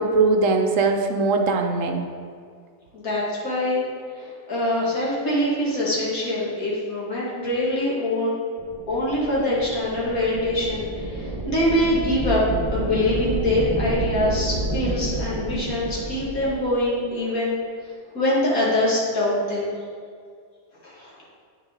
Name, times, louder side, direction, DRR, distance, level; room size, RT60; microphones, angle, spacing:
voice 1, 0.0-2.0, right 3 dB, 70° right, 4 dB, 1.0 m, -20 dB
voice 2, 2.9-3.8 4.2-8.3 8.9-12.4 12.7-17.5 18.1-19.7 20.8-21.1, left 1 dB, 75° left, -6 dB, 2.5 m, -24 dB
sound 1, 8.6-16.6, right 2 dB, 25° right, 0.9 m, -29 dB
9.0 x 6.3 x 3.7 m, 2.1 s
omnidirectional pair, 1.5 m